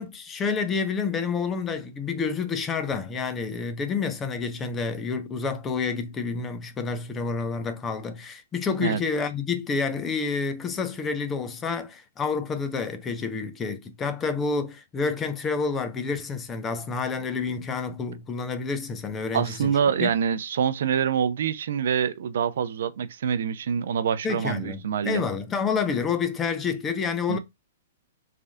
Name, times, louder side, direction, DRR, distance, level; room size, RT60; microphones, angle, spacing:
voice 1, 0.0-19.7 20.0-20.1 24.2-27.4, left 5 dB, 20° left, 0.6 m, -29 dB
voice 2, 19.3-25.2 27.3-27.4, right 7 dB, 70° right, 0.5 m, -25 dB
3.3 x 2.6 x 3.5 m
hypercardioid pair, 130°, 0 cm